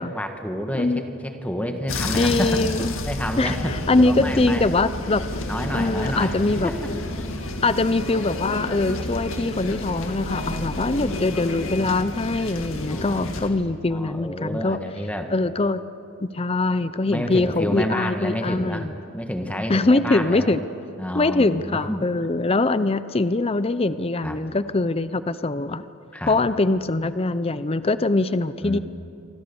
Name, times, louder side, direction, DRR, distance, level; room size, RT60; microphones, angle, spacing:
voice 1, 0.0-2.5 3.1-4.7 5.5-6.4 6.6-6.9 7.5-7.6 10.0-10.7 12.9-13.6 13.9-15.3 17.1-18.9 19.1-20.6 21.0-22.3 24.2-24.4 26.1-26.4 28.6-28.8, equal, 5° left, 5 dB, 1.5 m, -29 dB
sound 1, 1.9-13.5, left 1 dB, 70° left, 2.3 m, -30 dB
voice 2, 2.2-2.9 3.4-5.2 5.7-6.7 7.6-14.8 15.3-15.8 16.2-18.9 19.7-20.6 21.1-25.9 26.3-28.8, left 2 dB, 25° left, 14 dB, 0.6 m, -23 dB
28.0 x 24.5 x 7.1 m, 2.7 s
head